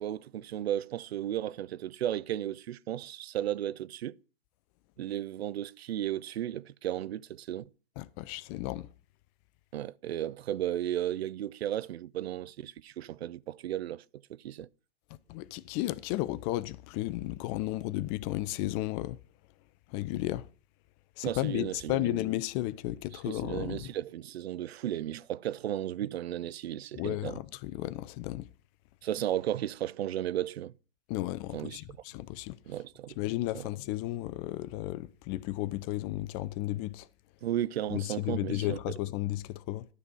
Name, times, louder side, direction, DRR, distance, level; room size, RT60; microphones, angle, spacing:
voice 1, 0.0-4.2 5.0-7.6 9.7-14.0 14.3-14.7 21.2-22.2 23.1-27.4 29.0-30.7 31.5-32.0 32.7-33.2 33.5-33.7 37.4-38.8, right 12 dB, 80° right, 0.5 m, -34 dB
voice 2, 8.0-8.9 15.3-19.2 19.9-20.4 21.2-23.9 26.9-28.5 31.1-32.6 33.2-37.1 37.9-39.8, left 16 dB, 30° left, 0.4 m, -33 dB
12.0 x 4.1 x 6.2 m
hypercardioid pair, 115°, 31 cm